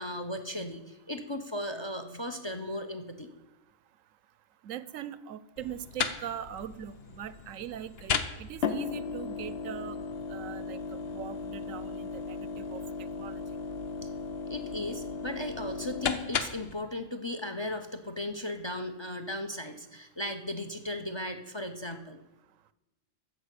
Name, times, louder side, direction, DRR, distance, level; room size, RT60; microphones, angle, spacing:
voice 1, 0.0-3.3 14.0-14.1 14.5-22.2, left 1 dB, 30° left, 8 dB, 0.6 m, -36 dB
voice 2, 4.6-10.0 10.3-13.4, right 10 dB, 85° right, 16 dB, 1.0 m, -41 dB
sound 1, 5.6-16.8, left 5 dB, 55° left, 0.9 m, -35 dB
14.0 x 5.2 x 8.2 m, 1.0 s
omnidirectional pair, 1.3 m